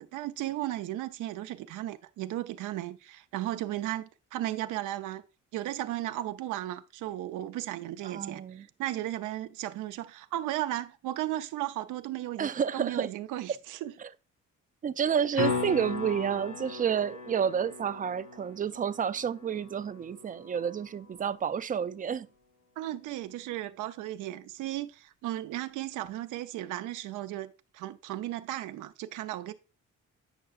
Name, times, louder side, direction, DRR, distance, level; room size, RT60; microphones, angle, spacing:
voice 1, 0.0-5.2 5.5-13.9 15.3-15.6 22.8-29.5, right 14 dB, 85° right, 0.5 m, -35 dB
voice 2, 8.0-8.7 12.4-13.1 14.0-14.1 14.8-22.3, right 8 dB, 30° right, 0.3 m, -30 dB
sound 1, 15.3-21.4 26.1-26.2, left 4 dB, 70° left, 2.7 m, -37 dB
8.8 x 5.5 x 2.4 m
cardioid pair, 90°, 30 cm